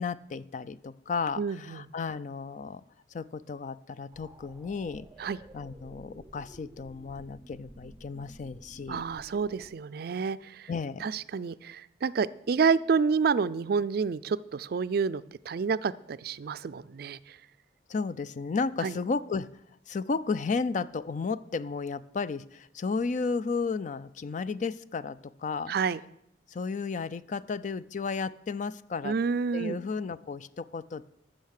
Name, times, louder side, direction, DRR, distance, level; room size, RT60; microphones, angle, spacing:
voice 1, 0.0-2.8 3.1-5.1 5.5-9.0 10.7-11.1 17.9-19.5 19.9-25.7 26.5-29.1 29.5-31.0, left 4 dB, 45° left, 16 dB, 0.4 m, -33 dB
voice 2, 1.4-1.8 5.2-5.4 8.9-10.7 11.0-17.4 18.8-19.0 25.7-26.0 29.0-29.8, right 5 dB, 60° right, 17 dB, 0.4 m, -29 dB
sound 1, 4.1-9.7, right 1 dB, 15° right, 0.6 m, -52 dB
14.0 x 6.5 x 6.5 m, 0.76 s
head